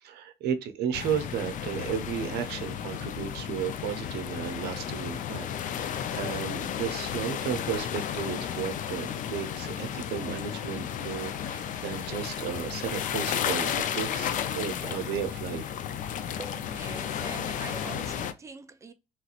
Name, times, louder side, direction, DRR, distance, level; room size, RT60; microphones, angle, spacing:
voice 1, 0.0-15.7, right 8 dB, 75° right, 0.6 m, -34 dB
sound 1, 0.9-18.3, left 9 dB, 50° left, 0.4 m, -33 dB
voice 2, 16.4-18.9, right 4 dB, 20° right, 0.4 m, -43 dB
3.0 x 2.4 x 2.8 m
cardioid pair, 110°, 17 cm